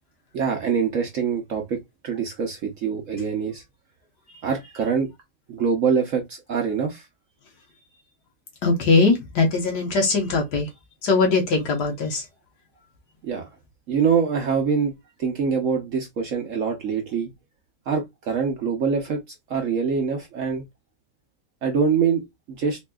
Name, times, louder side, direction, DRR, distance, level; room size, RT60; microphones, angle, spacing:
voice 1, 0.3-3.6 4.4-5.1 5.5-7.0 13.2-13.4 13.9-14.9 15.2-17.3 17.9-19.2 19.5-20.6 21.6-22.8, right 6 dB, 60° right, 0.9 m, -24 dB
voice 2, 8.6-10.7 11.0-12.2, left 3 dB, 70° left, 1.5 m, -21 dB
4.0 x 2.6 x 2.3 m
omnidirectional pair, 1.9 m